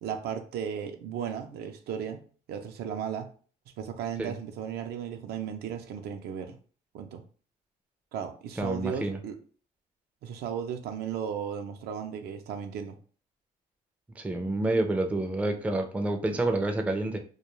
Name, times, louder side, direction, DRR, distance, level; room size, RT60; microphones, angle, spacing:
voice 1, 0.0-2.2 2.5-3.3 3.8-6.6 6.9-7.2 8.1-9.4 10.2-13.0, right 8 dB, 70° right, 7 dB, 0.5 m, -35 dB
voice 2, 8.6-9.2 14.2-17.2, right 2 dB, 10° right, 4 dB, 0.4 m, -28 dB
2.3 x 2.2 x 3.0 m, 0.41 s
cardioid pair, 110°, 17 cm